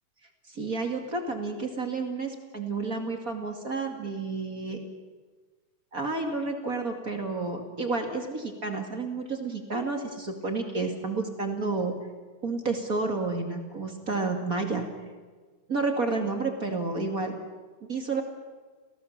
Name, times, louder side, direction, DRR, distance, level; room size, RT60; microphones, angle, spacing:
voice 1, 0.5-4.8 5.9-11.9 12.4-14.9 15.7-17.4 17.9-18.2, right 3 dB, 30° right, 4 dB, 2.0 m, -30 dB
30.0 x 17.0 x 7.3 m, 1.4 s
omnidirectional pair, 3.7 m